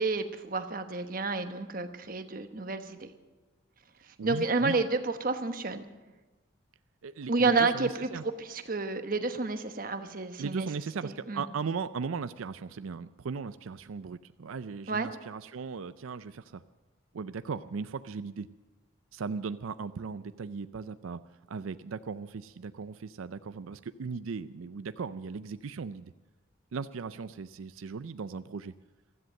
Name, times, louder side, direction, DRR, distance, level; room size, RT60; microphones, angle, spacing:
voice 1, 0.0-3.1 4.2-5.8 7.3-10.7 11.0-11.4 14.9-15.1, right 3 dB, 45° right, 8 dB, 1.1 m, -30 dB
voice 2, 4.2-4.8 7.0-8.2 10.4-16.6 17.1-18.5 19.1-21.2 21.5-26.1 26.7-28.7, right 5 dB, 90° right, 13 dB, 0.5 m, -37 dB
15.5 x 13.5 x 6.5 m, 1.2 s
head